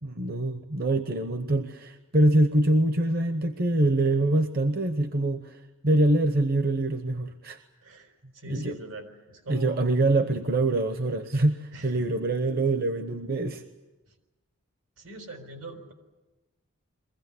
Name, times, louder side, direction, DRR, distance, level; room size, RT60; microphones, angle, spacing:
voice 1, 0.0-7.6 8.5-8.8 9.5-13.6, right 2 dB, 45° right, 8 dB, 0.8 m, -24 dB
voice 2, 7.8-9.8 11.7-12.2 14.1-14.2 15.0-15.9, right 1 dB, 80° right, 5 dB, 4.3 m, -43 dB
23.0 x 16.0 x 9.7 m, 1.1 s
head